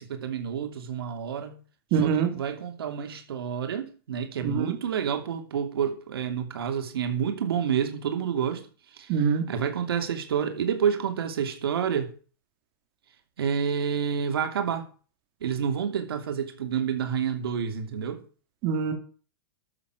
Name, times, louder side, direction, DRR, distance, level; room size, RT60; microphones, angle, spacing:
voice 1, 0.0-1.6 2.0-8.7 8.9-9.2 9.5-12.1 13.4-14.9 15.4-18.2, right 7 dB, 90° right, 6 dB, 3.0 m, -29 dB
voice 2, 1.9-2.3 4.4-4.8 9.1-9.4 18.6-18.9, right 6 dB, 40° right, 5 dB, 2.7 m, -24 dB
13.0 x 7.0 x 6.2 m, 0.39 s
supercardioid pair, 155°, 12 cm